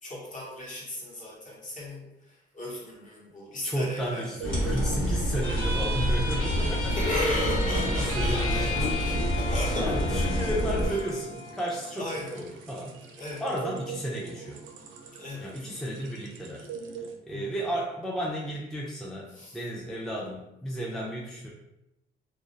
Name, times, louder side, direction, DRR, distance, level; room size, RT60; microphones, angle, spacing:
voice 1, 0.0-4.3 6.9-10.2 10.8-11.0 12.0-12.4 13.2-13.5 15.1-15.6 17.3-17.5 19.3-19.6, left 1 dB, 40° left, -4 dB, 0.9 m, -35 dB
voice 2, 3.6-7.0 7.2-7.4 8.0-8.8 9.1-9.5 9.8-12.1 12.3-12.9 13.4-14.6 15.4-16.7 17.2-21.5, equal, ahead, -3 dB, 0.3 m, -33 dB
sound 1, 3.6-17.2, right 6 dB, 75° right, 0.4 m, -43 dB
sound 2, 4.4-10.9, equal, 65° left, 1.2 m, -27 dB
sound 3, 5.4-12.4, left 2 dB, 80° left, 0.8 m, -35 dB
2.2 x 2.0 x 2.7 m, 0.89 s
cardioid pair, 90°, 20 cm